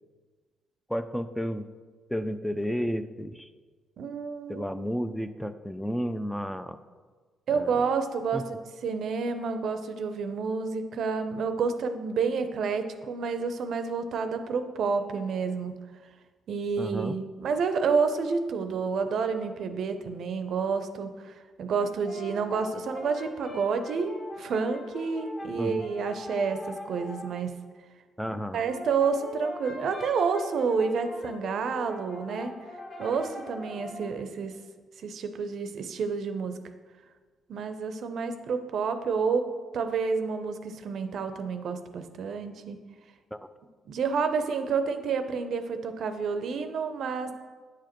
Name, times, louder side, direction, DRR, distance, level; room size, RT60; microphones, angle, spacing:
voice 1, 0.9-1.6 2.1-3.5 4.5-6.8 7.5-7.8 8.3-8.4 16.8-17.2 25.5-25.9 28.2-28.6 43.3-43.4, equal, ahead, 10 dB, 0.3 m, -32 dB
voice 2, 4.0-4.8 7.5-15.7 16.5-27.6 28.5-32.5 33.0-34.6 35.0-36.6 37.5-39.5 39.7-42.8 43.9-47.3, right 5 dB, 65° right, 8 dB, 0.5 m, -29 dB
Brass instrument, 21.8-27.3 28.3-34.1, left 2 dB, 50° left, 1.9 m, -42 dB
8.9 x 4.9 x 3.0 m, 1.4 s
cardioid pair, 90°, 0 cm